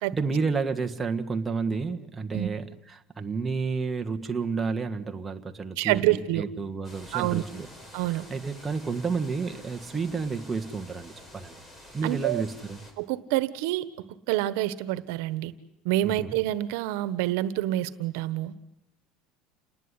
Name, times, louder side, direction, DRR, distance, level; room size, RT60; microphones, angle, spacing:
voice 1, 0.1-7.7 8.0-11.6 11.9-12.8 16.0-16.4, right 4 dB, 15° right, 4 dB, 1.5 m, -31 dB
voice 2, 5.8-6.4 7.1-7.4 7.9-8.2 12.0-12.4 13.0-13.8 14.3-15.5 15.8-18.5, right 15 dB, 75° right, 15 dB, 1.3 m, -27 dB
sound 1, 6.8-12.9, equal, 15° left, 4.5 m, -49 dB
29.0 x 19.5 x 9.9 m, 0.86 s
cardioid pair, 150°, 0 cm